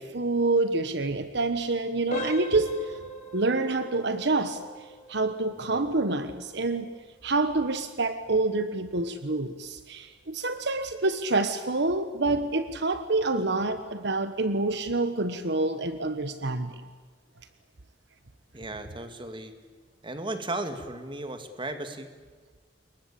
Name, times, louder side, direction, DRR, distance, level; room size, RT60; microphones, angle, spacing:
voice 1, 0.0-3.0 3.3-4.6 5.1-6.9 7.2-16.7, right 2 dB, 65° right, 10 dB, 1.4 m, -27 dB
sound 1, 2.1-12.8 13.1-13.4 13.9-14.0 14.5-14.7, left 1 dB, 40° left, 4.7 m, -42 dB
voice 2, 18.5-19.5 20.0-22.1, right 2 dB, 25° right, 7 dB, 2.5 m, -35 dB
28.0 x 22.5 x 8.7 m, 1.4 s
head